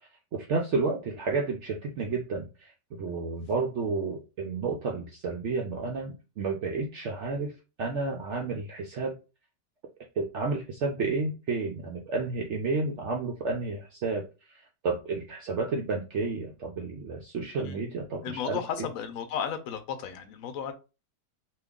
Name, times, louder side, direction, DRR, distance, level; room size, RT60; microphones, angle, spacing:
voice 1, 0.3-2.7 3.0-9.1 10.2-18.6, right 4 dB, 80° right, 1 dB, 0.6 m, -31 dB
voice 2, 18.2-20.7, left 8 dB, 65° left, 7 dB, 0.9 m, -34 dB
2.8 x 2.3 x 3.5 m, 0.31 s
omnidirectional pair, 1.8 m